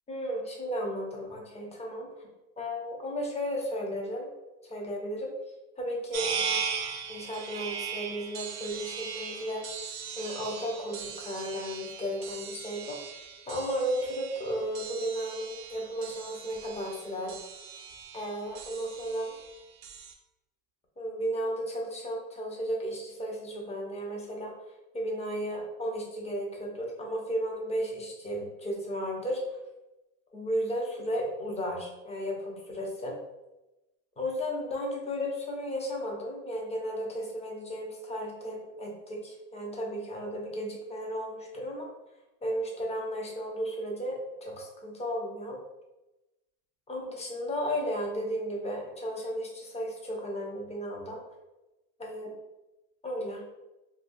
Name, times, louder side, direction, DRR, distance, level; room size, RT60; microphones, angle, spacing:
voice 1, 0.1-2.2 2.6-4.3 4.6-5.3 5.8-6.6 7.1-9.6 10.2-13.0 13.5-17.3 18.1-19.3 21.0-24.5 24.9-29.6 30.3-33.2 34.2-41.9 42.4-45.6 46.9-51.2 52.0-52.3 53.0-53.4, equal, 15° left, -1 dB, 0.7 m, -34 dB
sound 1, 6.1-20.1, right 6 dB, 45° right, 0.5 m, -39 dB
3.2 x 2.4 x 2.6 m, 1.0 s
supercardioid pair, 120°, 38 cm